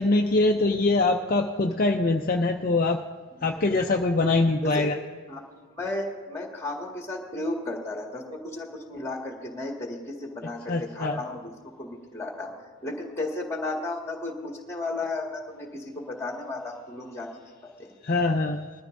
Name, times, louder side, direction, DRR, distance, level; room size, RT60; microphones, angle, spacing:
voice 1, 0.0-3.0 3.4-5.0 10.7-11.2 18.0-18.8, left 2 dB, 40° left, 2 dB, 0.5 m, -23 dB
voice 2, 5.8-11.5 11.8-12.5 12.8-17.9, left 2 dB, 10° left, 0 dB, 1.8 m, -34 dB
21.0 x 13.5 x 2.6 m, 1.5 s
head